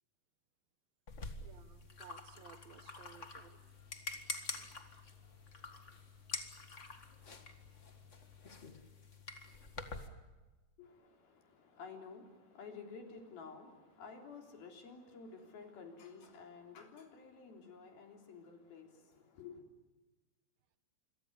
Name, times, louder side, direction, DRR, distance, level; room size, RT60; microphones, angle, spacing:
sound 1, 1.1-10.1, left 3 dB, 35° left, 1.2 m, -47 dB
voice 1, 1.4-3.6, right 8 dB, 75° right, 11 dB, 3.1 m, -58 dB
sound 2, 3.3-8.7, left 4 dB, 50° left, 5.4 m, -67 dB
voice 2, 10.8-19.6, left 5 dB, 80° left, 3 dB, 5.4 m, -52 dB
27.0 x 23.0 x 7.0 m, 1.2 s
omnidirectional pair, 4.2 m